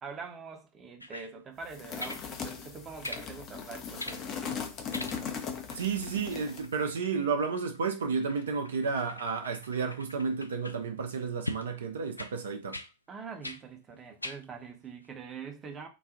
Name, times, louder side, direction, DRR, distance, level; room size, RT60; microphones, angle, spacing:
voice 1, 0.0-4.5 13.1-15.9, right 5 dB, 25° right, 0.8 m, -44 dB
sound 1, 1.0-1.3 2.0-2.3 3.0-3.3 4.0-4.2 4.9-5.4 5.7-10.8 11.4-11.7 12.2-12.3 12.7-12.9 13.4-13.6 14.2-14.4 15.0-15.1, left 1 dB, 85° left, 0.3 m, -42 dB
sound 2, 1.7-6.7, left 6 dB, 35° left, 0.7 m, -39 dB
voice 2, 5.7-12.8, right 5 dB, 65° right, 0.6 m, -32 dB
3.9 x 2.4 x 3.7 m
figure-of-eight pair, 90°, 0 cm